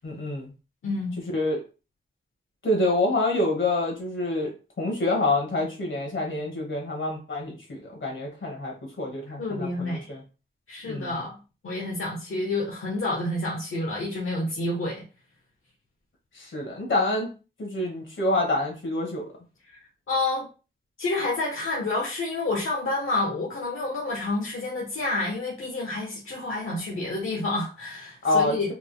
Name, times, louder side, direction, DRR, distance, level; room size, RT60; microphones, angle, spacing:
voice 1, 0.0-0.5 1.3-1.6 2.6-4.5 4.8-10.2 10.8-11.2 16.3-17.3 17.6-19.2 28.2-28.7, left 2 dB, 70° left, 0 dB, 1.7 m, -27 dB
voice 2, 0.8-1.2 9.4-10.1 10.7-11.4 11.6-15.0 20.1-20.5 21.0-28.7, left 2 dB, 90° left, -3 dB, 1.1 m, -29 dB
4.5 x 3.7 x 2.2 m, 0.33 s
wide cardioid pair, 115°, 21 cm